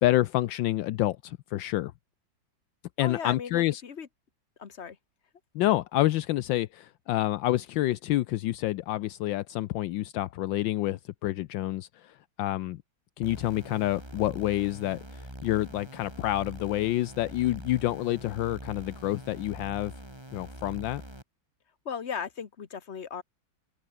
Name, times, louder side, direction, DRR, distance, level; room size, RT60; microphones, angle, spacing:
voice 1, 0.0-1.9 3.0-3.8 5.5-12.8 13.2-19.9 20.3-21.0, left 15 dB, 80° left, 1.3 m, -28 dB
voice 2, 3.0-4.1 4.6-5.0 21.8-23.2, left 7 dB, 40° left, 1.4 m, -36 dB
sound 1, 13.2-21.2, right 1 dB, 10° right, 5.1 m, -44 dB
open air
omnidirectional pair, 2.1 m